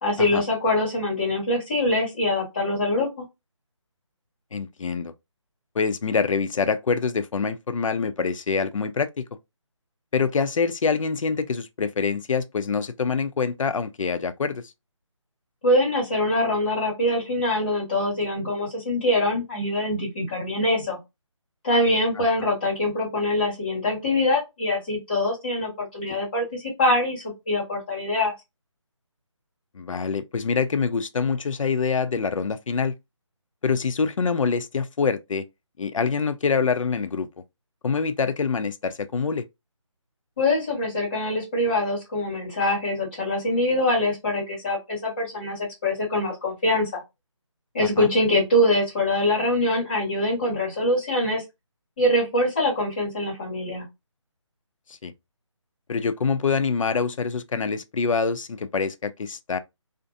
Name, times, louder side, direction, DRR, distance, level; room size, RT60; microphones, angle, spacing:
voice 1, 0.0-3.2 15.6-21.0 21.6-28.3 40.4-47.0 47.7-51.4 52.0-53.8, left 1 dB, 20° left, 1.3 m, -24 dB
voice 2, 4.5-5.1 5.8-9.2 10.1-14.6 22.2-22.3 26.1-26.2 29.7-32.9 33.6-35.5 35.8-37.3 37.8-39.5 48.0-48.1 54.9-55.1 55.9-59.6, left 5 dB, 85° left, 0.5 m, -25 dB
2.5 x 2.5 x 2.5 m
hypercardioid pair, 175°, 16 cm